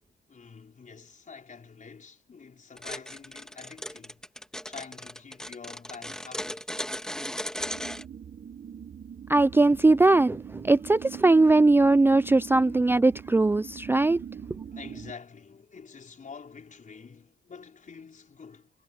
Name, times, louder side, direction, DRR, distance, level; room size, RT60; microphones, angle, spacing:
voice 1, 0.3-4.3 4.7-6.7 14.7-18.7, left 5 dB, 45° left, 4.9 m, -47 dB
sound 1, 2.8-8.0, equal, 5° left, 1.8 m, -36 dB
sound 2, 7.6-15.1, right 8 dB, 50° right, 1.2 m, -42 dB
voice 2, 9.3-14.2, right 2 dB, 10° right, 0.4 m, -20 dB
cardioid pair, 70°, 18 cm